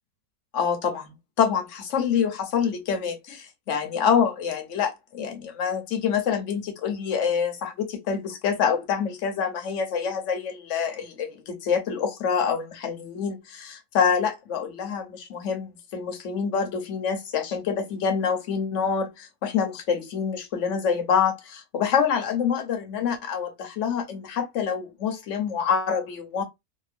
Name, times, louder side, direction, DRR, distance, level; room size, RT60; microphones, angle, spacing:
voice 1, 0.5-3.4 3.7-26.4, left 7 dB, 60° left, 1.0 m, -26 dB
2.7 x 2.5 x 3.3 m
omnidirectional pair, 1.6 m